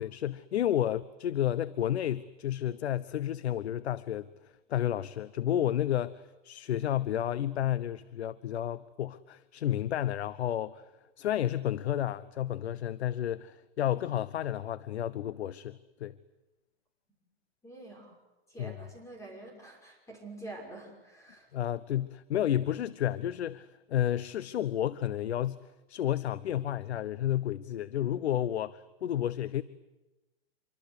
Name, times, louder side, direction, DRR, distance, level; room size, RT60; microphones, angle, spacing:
voice 1, 0.0-4.3 4.7-10.9 11.2-16.2 18.6-18.8 21.5-29.6, left 11 dB, 90° left, 0.9 m, -31 dB
voice 2, 17.6-18.2 18.5-21.5, right 2 dB, 10° left, 6.2 m, -46 dB
26.5 x 24.5 x 8.3 m
hypercardioid pair, 150°, 32 cm